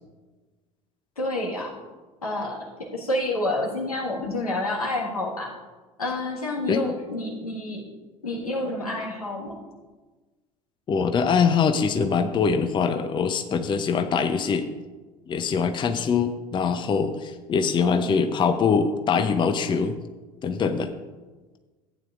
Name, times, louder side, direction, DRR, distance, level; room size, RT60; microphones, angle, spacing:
voice 1, 1.2-1.8 2.2-5.5 6.0-7.8 8.2-9.6 17.8-18.1, left 2 dB, 85° left, -2 dB, 1.7 m, -29 dB
voice 2, 10.9-14.7 15.3-19.9 20.4-20.9, left 5 dB, 25° left, 8 dB, 0.7 m, -23 dB
15.0 x 9.1 x 2.5 m, 1.3 s
figure-of-eight pair, 70°, 18 cm